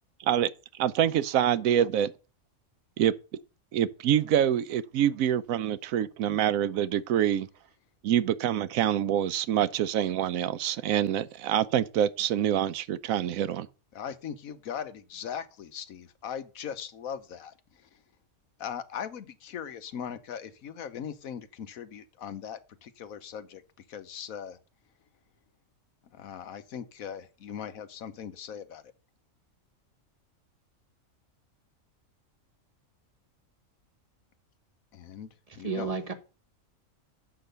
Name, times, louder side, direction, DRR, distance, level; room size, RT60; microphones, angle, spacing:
voice 1, 0.8-2.1 3.0-3.1 3.7-7.5 8.0-13.7, right 10 dB, 80° right, 1.0 m, -26 dB
voice 2, 13.9-17.5 18.6-23.6 23.9-24.6 26.1-28.8 34.9-35.9, left 8 dB, 90° left, 1.3 m, -39 dB
voice 3, 35.5-36.1, right 4 dB, 30° right, 1.0 m, -32 dB
7.9 x 6.0 x 6.6 m
omnidirectional pair, 1.4 m